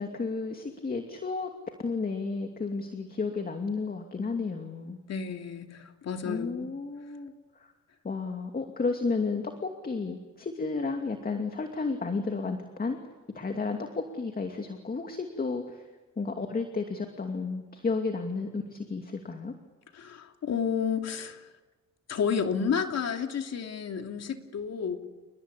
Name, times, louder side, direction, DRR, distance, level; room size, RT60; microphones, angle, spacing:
voice 1, 0.0-1.5 1.8-5.0 6.2-7.3 7.6-7.7 8.0-13.0 13.3-15.8 16.2-19.5, left 4 dB, 30° left, 4 dB, 2.6 m, -32 dB
voice 2, 5.1-6.7 19.9-21.5 22.1-25.0, left 6 dB, 60° left, 4 dB, 3.0 m, -31 dB
29.5 x 20.0 x 8.5 m, 1.2 s
cardioid pair, 90°, 30 cm